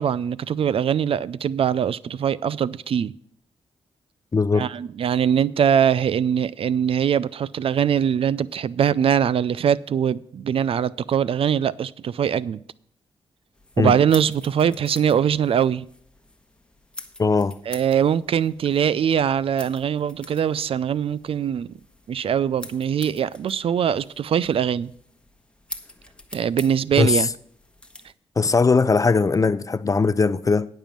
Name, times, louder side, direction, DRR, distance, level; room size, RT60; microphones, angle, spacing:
voice 1, 0.0-3.1 4.5-12.6 13.8-15.9 17.7-21.7 22.1-24.9 26.3-27.3, right 8 dB, 60° right, 0.4 m, -22 dB
voice 2, 4.3-4.6 13.8-13.9 17.2-17.6 27.0-27.3 28.4-30.7, left 4 dB, 30° left, 0.5 m, -19 dB
sound 1, 13.5-28.1, left 1 dB, 10° left, 1.2 m, -45 dB
10.0 x 5.4 x 7.4 m
cardioid pair, 60°, 11 cm